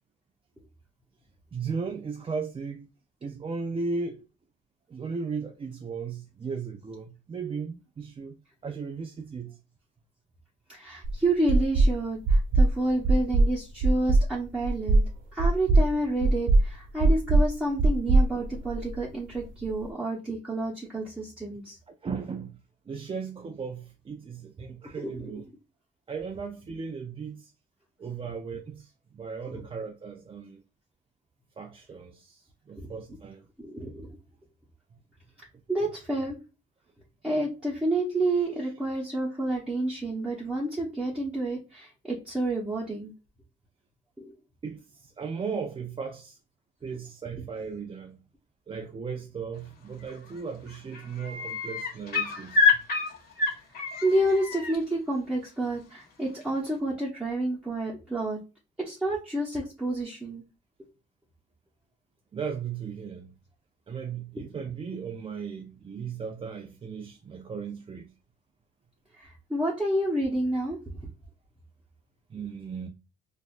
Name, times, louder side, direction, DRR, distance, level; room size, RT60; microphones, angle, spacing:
voice 1, 1.5-2.9 3.2-4.2 4.9-8.4 8.6-9.6 21.9-22.6 22.9-25.4 26.1-27.5 28.0-30.6 31.6-33.5 44.6-46.4 46.8-48.2 48.7-52.8 62.3-63.3 63.9-68.1 72.3-72.9, right 5 dB, 25° right, 0.4 m, -36 dB
voice 2, 10.7-15.0 15.3-21.8 25.0-25.3 29.5-29.6 32.8-32.9 33.6-34.1 35.7-36.4 37.2-43.1 44.2-44.3 54.0-58.4 58.8-60.4 69.2-70.8, right 1 dB, 5° right, 1.0 m, -29 dB
sound 1, 11.0-11.1 11.5-11.9 12.3-12.7 13.0-13.5 13.8-14.2 14.6-15.0 15.4-15.9 16.2-16.6 17.0-17.5 17.8-19.0, right 2 dB, 75° right, 0.9 m, -20 dB
sound 2, 50.1-50.4 50.7-54.8 56.4-56.5, left 4 dB, 55° left, 1.4 m, -27 dB
4.1 x 2.5 x 2.4 m
cardioid pair, 90°, 20 cm